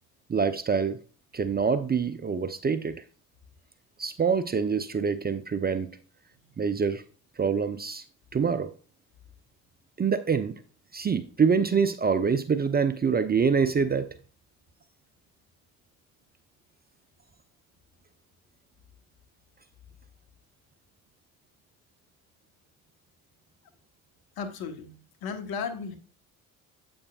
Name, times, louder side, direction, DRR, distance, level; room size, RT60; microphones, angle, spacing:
voice 1, 0.3-1.0 1.3-3.0 4.0-5.9 6.6-7.0 7.4-8.0 8.3-8.7 10.0-10.5 10.9-14.1, right 6 dB, 20° right, 0.6 m, -25 dB
voice 2, 24.4-24.9 25.2-26.0, left 6 dB, 55° left, 1.5 m, -34 dB
8.6 x 7.9 x 2.4 m
figure-of-eight pair, 50°, 44 cm